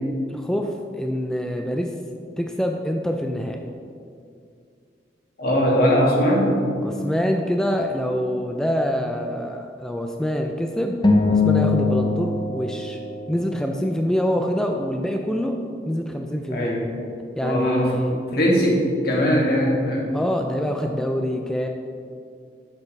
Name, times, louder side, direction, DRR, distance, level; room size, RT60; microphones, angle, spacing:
voice 1, 0.3-1.9 2.4-3.6 6.8-11.0 11.3-13.0 13.3-15.6 15.9-16.8 17.4-18.2 18.6-18.7 20.1-21.7, equal, 5° left, 3 dB, 0.4 m, -25 dB
voice 2, 5.4-6.6 16.5-16.9 17.4-17.9 18.3-18.7 19.0-20.1, equal, 60° left, -3 dB, 2.1 m, -20 dB
sound 1, 11.0-13.7, left 3 dB, 25° left, 0.7 m, -21 dB
10.5 x 7.4 x 3.2 m, 2.4 s
head